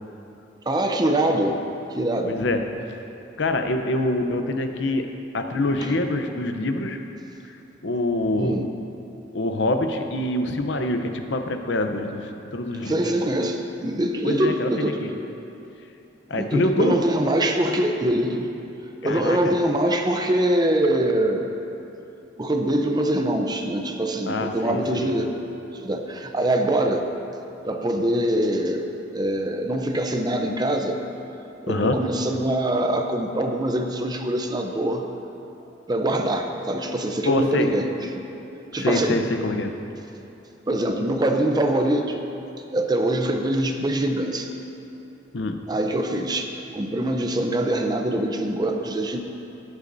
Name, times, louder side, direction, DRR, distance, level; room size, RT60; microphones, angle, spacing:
voice 1, 0.7-1.6 1.9-2.4 5.8-5.9 6.2-6.3 8.4-8.7 12.9-15.0 16.3-18.5 19.0-21.5 22.4-25.3 25.7-27.1 27.6-31.0 31.6-35.0 35.9-38.2 38.7-39.2 40.7-42.2 42.7-44.5 45.7-49.2, right 1 dB, 20° right, 4 dB, 0.6 m, -24 dB
voice 2, 2.3-2.6 3.4-5.1 5.3-7.0 7.8-8.6 9.3-13.0 14.2-15.1 16.3-17.0 19.0-19.5 24.3-25.1 31.7-32.0 37.3-37.7 38.7-39.7 45.3-45.6, left 2 dB, 70° left, 6 dB, 0.7 m, -25 dB
18.0 x 8.2 x 2.6 m, 3.0 s
head